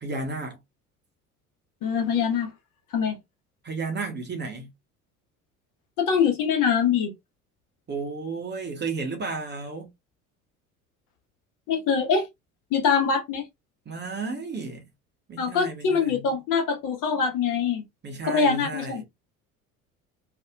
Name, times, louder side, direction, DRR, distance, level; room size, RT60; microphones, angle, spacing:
voice 1, 0.0-0.6 3.6-4.7 7.9-9.9 13.9-14.9 15.3-16.3 18.0-19.0, right 3 dB, 25° right, 0.9 m, -33 dB
voice 2, 1.8-2.5 2.9-3.2 6.0-7.1 11.7-12.3 12.7-13.4 15.4-17.8 18.2-19.0, left 6 dB, 45° left, 1.2 m, -23 dB
2.7 x 2.5 x 2.3 m
figure-of-eight pair, 60°, 44 cm